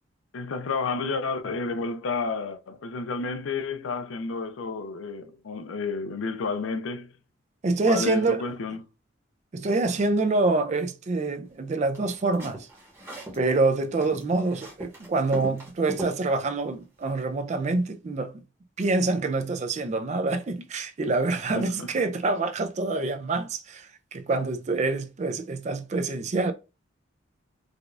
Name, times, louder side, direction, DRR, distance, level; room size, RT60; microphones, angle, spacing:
voice 1, 0.3-7.1 7.9-8.8 21.5-21.9, left 4 dB, 80° left, 0.5 m, -31 dB
voice 2, 7.6-8.4 9.5-12.7 13.3-18.4 18.8-26.5, right 3 dB, 35° right, 0.4 m, -26 dB
sound 1, 11.9-13.4 13.7-16.2, right 1 dB, 15° right, 0.9 m, -39 dB
4.8 x 2.3 x 2.4 m
head